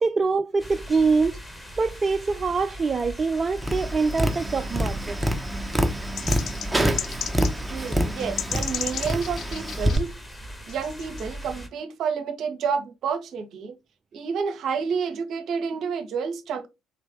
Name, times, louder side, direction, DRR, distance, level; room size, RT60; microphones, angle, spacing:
voice 1, 0.0-1.4 1.8-5.2, right 4 dB, 30° right, 0.3 m, -24 dB
sound 1, 0.6-11.7, equal, 15° left, 1.1 m, -40 dB
Tap, 3.6-10.0, equal, 5° right, 0.8 m, -26 dB
sound 2, 6.1-7.6 7.9-8.0 8.2-10.0 10.7-11.2, left 9 dB, 50° left, 0.3 m, -33 dB
voice 2, 7.7-10.1 10.7-13.7 14.1-16.7, right 6 dB, 55° right, 0.7 m, -29 dB
4.1 x 3.3 x 3.3 m
figure-of-eight pair, 50°, 0 cm